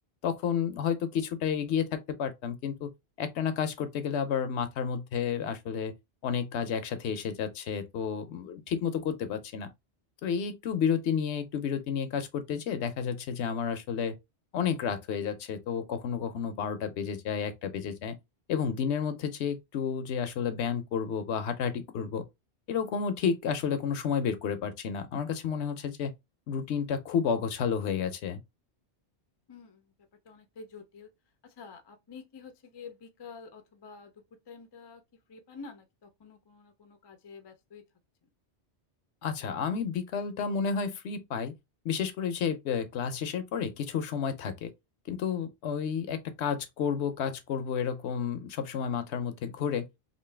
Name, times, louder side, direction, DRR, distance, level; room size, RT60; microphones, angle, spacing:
voice 1, 0.2-2.9 3.2-5.9 6.2-9.7 10.2-14.2 14.5-18.2 18.5-22.2 22.7-26.1 26.5-28.4 39.2-41.5 41.8-44.7 45.1-49.9, left 7 dB, 80° left, 0.9 m, -31 dB
voice 2, 29.5-29.9 30.2-31.1 31.4-35.0 35.3-37.8, left 5 dB, 40° left, 0.4 m, -48 dB
3.0 x 2.5 x 3.2 m
omnidirectional pair, 1.1 m